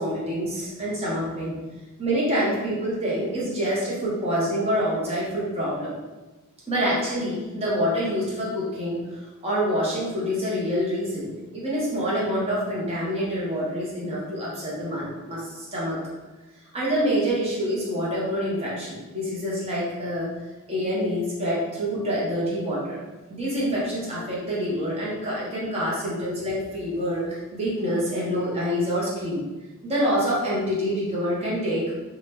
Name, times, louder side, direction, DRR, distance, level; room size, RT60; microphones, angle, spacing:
voice 1, 0.0-1.5 2.0-6.0 6.7-16.0 16.7-20.3 20.7-23.0 23.3-29.4 29.8-31.9, equal, 30° right, -6 dB, 1.0 m, -26 dB
2.8 x 2.3 x 3.3 m, 1.1 s
head